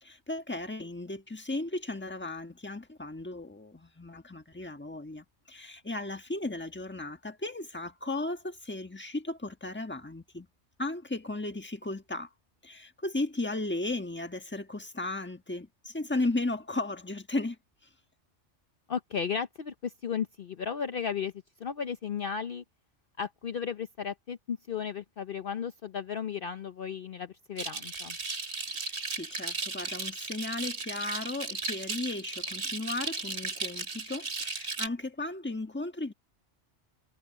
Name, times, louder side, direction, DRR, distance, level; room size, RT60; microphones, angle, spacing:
voice 1, 0.0-10.5 10.8-12.3 12.6-17.6 28.8-36.1, left 2 dB, 10° left, 1.3 m, -35 dB
voice 2, 18.9-21.3 21.6-22.6 23.2-28.2, left 7 dB, 55° left, 0.9 m, -34 dB
sound 1, 27.6-34.9, right 3 dB, 65° right, 2.6 m, -36 dB
omnidirectional pair, 1.2 m